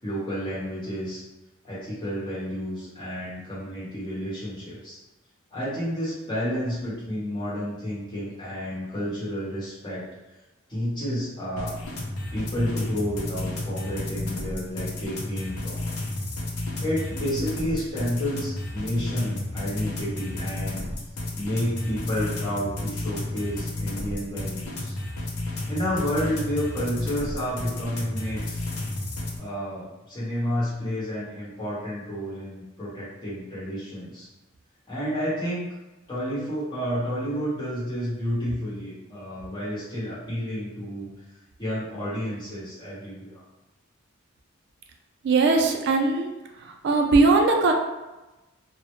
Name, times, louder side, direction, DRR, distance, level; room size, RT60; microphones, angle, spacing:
voice 1, 0.0-1.2 1.6-5.0 5.5-10.0 10.7-11.8 12.3-15.8 16.8-20.8 21.3-24.9 25.7-28.6 29.4-34.3 34.9-35.6 36.1-41.1 41.6-43.4, equal, 20° left, -9 dB, 0.9 m, -30 dB
sound 1, 11.6-29.4, left 2 dB, 80° left, 0.5 m, -32 dB
voice 2, 45.2-46.3 46.6-47.7, right 3 dB, 50° right, 3 dB, 0.3 m, -20 dB
2.1 x 2.0 x 2.9 m, 1.0 s
head